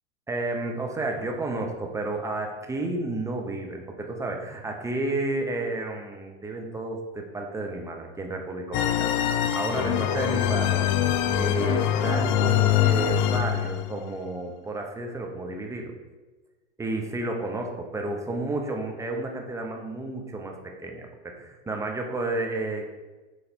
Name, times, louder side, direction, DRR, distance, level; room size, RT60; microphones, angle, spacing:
voice 1, 0.3-10.9 11.4-15.9 16.8-22.8, right 2 dB, 10° right, 1 dB, 0.7 m, -31 dB
sound 1, 8.7-13.9, left 10 dB, 40° left, 0.4 m, -24 dB
6.9 x 3.2 x 4.3 m, 1.2 s
hypercardioid pair, 120°, 35 cm